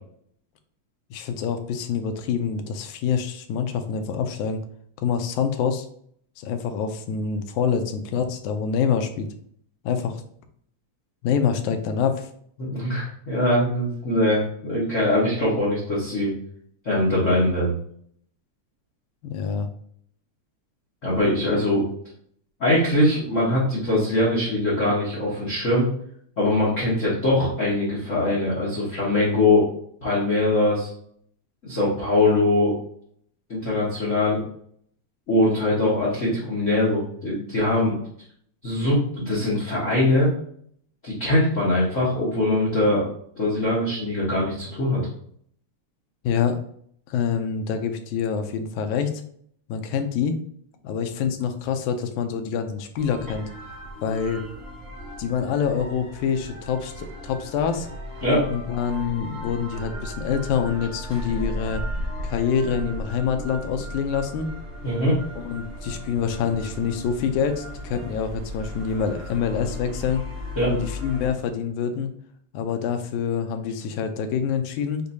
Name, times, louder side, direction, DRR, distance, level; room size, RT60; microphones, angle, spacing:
voice 1, 1.1-4.6 5.0-5.9 6.4-9.3 9.9-10.2 11.2-12.3 19.2-19.7 46.2-46.6 47.1-49.1 49.7-50.4 50.8-53.5 54.0-54.4 55.2-57.9 58.5-61.8 62.2-64.5 65.4-70.3 70.7-72.1 72.5-75.0, left 7 dB, 85° left, 7 dB, 2.0 m, -26 dB
voice 2, 12.6-16.3 16.8-17.7 21.0-21.8 22.6-25.9 26.4-29.7 30.0-30.9 31.6-32.7 33.5-34.4 35.3-37.9 38.6-40.3 41.0-43.0 43.4-45.0 58.2-58.5 64.8-65.2 70.6-70.7, left 1 dB, 60° left, -7 dB, 0.7 m, -22 dB
sound 1, 52.9-71.3, equal, 30° right, 0.9 m, -36 dB
6.5 x 2.6 x 2.7 m, 0.63 s
omnidirectional pair, 3.3 m